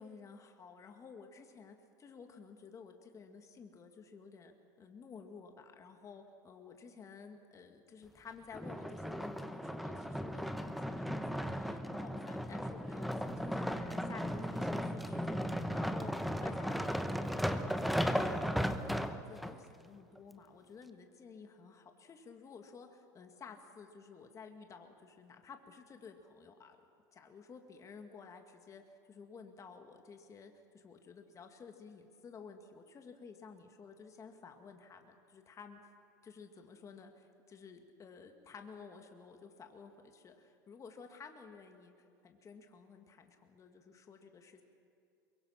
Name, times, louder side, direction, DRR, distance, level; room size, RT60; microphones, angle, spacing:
voice 1, 0.0-15.4 15.7-26.8 27.1-28.8 29.1-35.8 36.2-41.9 42.2-44.6, left 5 dB, 30° left, 5 dB, 2.2 m, -53 dB
sound 1, 8.5-19.5 20.2-20.3, equal, ahead, 1.1 m, -36 dB
23.0 x 23.0 x 5.9 m, 2.5 s
hypercardioid pair, 90°, 10 cm